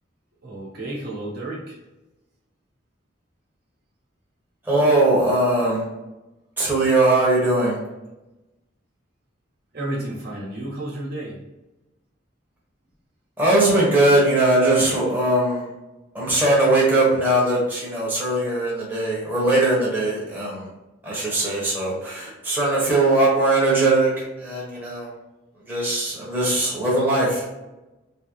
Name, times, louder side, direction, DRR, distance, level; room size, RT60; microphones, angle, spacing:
voice 1, 0.4-1.8 9.7-11.4, right 1 dB, 50° right, -4 dB, 1.1 m, -31 dB
voice 2, 4.6-5.9 6.6-7.8 13.4-15.7 16.1-20.7 21.0-25.1 25.7-27.4, right 2 dB, 10° right, -6 dB, 1.0 m, -20 dB
3.5 x 3.0 x 3.0 m, 1.0 s
head